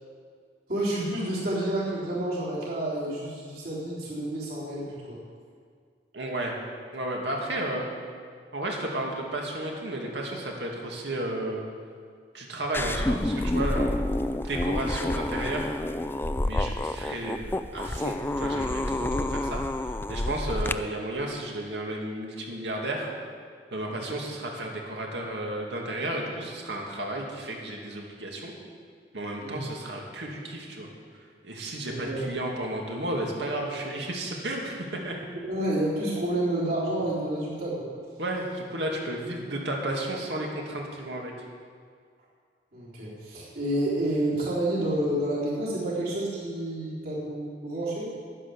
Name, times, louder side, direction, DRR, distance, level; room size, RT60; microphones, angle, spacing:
voice 1, 0.7-5.2 23.9-24.1 29.4-29.6 31.8-32.2 35.2-37.9 42.7-48.1, right 1 dB, 60° right, -7 dB, 4.0 m, -29 dB
voice 2, 6.1-6.6 6.9-7.9 8.5-11.6 12.3-13.9 14.3-15.8 16.4-23.1 23.7-28.5 29.1-30.9 31.4-35.2 38.2-41.3, right 1 dB, 75° right, 0 dB, 2.4 m, -33 dB
sound 1, 12.7-20.7, left 1 dB, 15° left, 0.3 m, -28 dB
11.0 x 10.5 x 7.2 m, 2.1 s
head